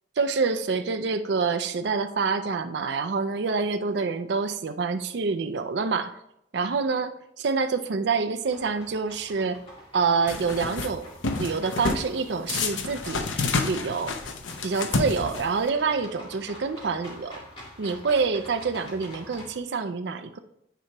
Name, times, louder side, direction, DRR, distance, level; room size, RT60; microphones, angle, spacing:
voice 1, 0.2-6.2 6.5-9.6 9.9-11.1 11.4-13.3 13.6-14.2 14.6-17.4 17.8-20.4, right 4 dB, 60° right, 8 dB, 0.4 m, -27 dB
sound 1, 8.4-19.6, left 1 dB, 30° left, 1.9 m, -47 dB
sound 2, 10.3-10.9 11.2-12.1 12.5-15.7, left 3 dB, 80° left, 0.7 m, -29 dB
9.1 x 4.6 x 2.9 m, 0.78 s
head